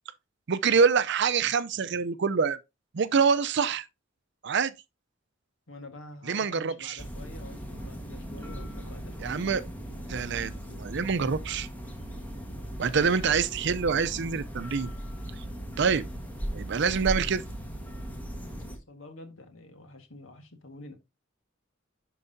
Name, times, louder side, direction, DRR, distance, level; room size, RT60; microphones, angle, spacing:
voice 1, 0.5-2.6 2.9-3.9 4.4-4.7 6.3-7.0 9.2-9.6 10.1-10.5 10.8-11.7 12.8-14.9 15.4-15.5 15.8-16.0 16.5-17.4, right 5 dB, 60° right, 0.5 m, -25 dB
voice 2, 5.7-9.4 18.8-20.9, left 2 dB, 75° left, 1.7 m, -48 dB
sound 1, 7.0-18.8, equal, 10° left, 1.4 m, -38 dB
11.0 x 4.7 x 2.7 m
head